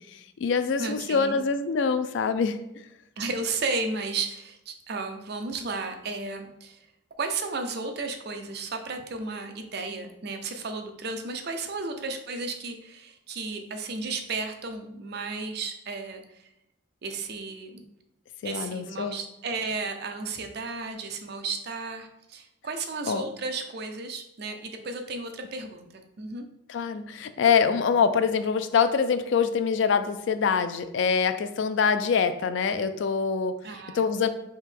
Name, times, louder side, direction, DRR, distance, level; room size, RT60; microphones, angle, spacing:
voice 1, 0.1-2.6 18.4-19.2 23.1-23.2 26.7-33.6 33.9-34.3, left 6 dB, 65° left, 11 dB, 0.3 m, -25 dB
voice 2, 0.8-1.4 3.2-6.9 7.2-16.5 17.0-17.8 18.4-26.5 33.6-34.3, right 3 dB, 55° right, 6 dB, 0.5 m, -34 dB
3.5 x 2.9 x 4.5 m, 0.84 s
head